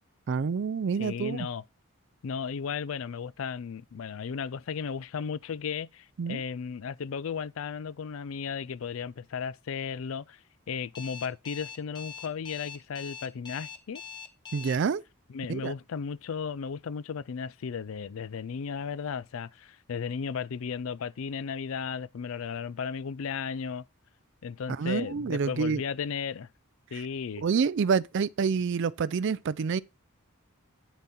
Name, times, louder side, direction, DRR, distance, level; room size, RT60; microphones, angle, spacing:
voice 1, 0.3-1.5 6.2-6.4 14.5-15.0 15.5-15.7 24.7-25.8 26.9-27.1 27.4-29.8, right 5 dB, 55° right, 0.4 m, -28 dB
voice 2, 1.0-1.6 2.2-10.4 10.7-14.0 15.3-23.8 24.4-26.5 26.9-27.4, left 6 dB, 65° left, 0.4 m, -35 dB
Alarm, 10.9-14.8, left 7 dB, 20° left, 1.1 m, -42 dB
9.3 x 7.3 x 4.2 m
head